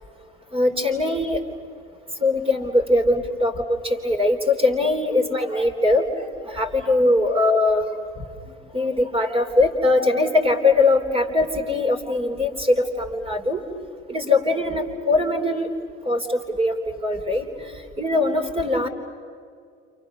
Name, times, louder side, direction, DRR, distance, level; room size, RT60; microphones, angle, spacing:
voice 1, 0.5-1.4 2.2-6.1 6.4-7.9 8.7-13.6 14.1-15.7 16.0-16.7 17.0-17.5 18.0-18.9, left 2 dB, 15° right, 5 dB, 3.6 m, -21 dB
29.5 x 28.5 x 6.5 m, 2.3 s
figure-of-eight pair, 70°, 35 cm